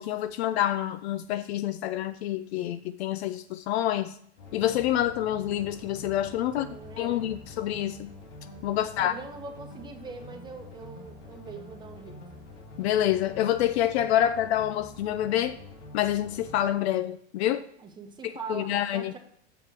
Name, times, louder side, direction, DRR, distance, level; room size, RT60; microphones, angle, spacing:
voice 1, 0.0-4.1 4.5-6.7 7.0-8.1 8.6-9.1 12.8-15.6 15.9-17.6 18.2-19.1, left 12 dB, 65° left, 0.5 m, -27 dB
sound 1, 4.4-16.7, left 2 dB, 90° left, 2.0 m, -46 dB
voice 2, 6.4-7.3 8.8-12.2 17.8-19.2, right 4 dB, 15° right, 1.1 m, -42 dB
7.0 x 4.4 x 6.1 m
hypercardioid pair, 120°, 34 cm